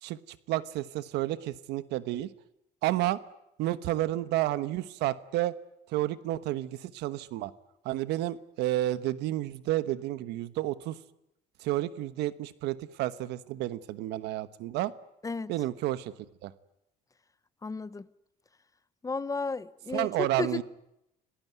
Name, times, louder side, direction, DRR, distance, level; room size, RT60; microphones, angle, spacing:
voice 1, 0.0-2.3 2.8-3.2 3.6-5.5 5.9-7.5 7.8-11.0 11.6-14.9 15.5-16.1 16.4-16.5 19.9-20.6, right 15 dB, 90° right, 1.2 m, -31 dB
voice 2, 17.6-18.1 19.0-20.6, left 4 dB, 20° left, 0.9 m, -33 dB
28.0 x 18.0 x 9.4 m
cardioid pair, 110°, 17 cm